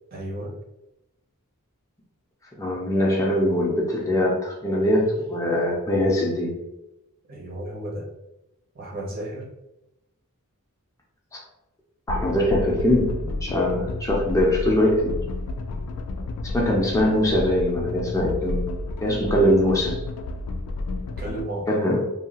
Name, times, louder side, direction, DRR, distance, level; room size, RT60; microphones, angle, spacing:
voice 1, 0.1-0.5 7.3-8.1 8.7-9.5 21.2-21.7, right 1 dB, 45° right, -2 dB, 0.7 m, -33 dB
voice 2, 2.6-6.6 12.1-15.2 16.5-18.7 19.0-20.0 21.7-22.1, left 1 dB, 15° left, -2 dB, 0.4 m, -22 dB
sound 1, 12.1-21.5, left 2 dB, 85° left, 0.3 m, -31 dB
2.7 x 2.3 x 2.8 m, 0.92 s
head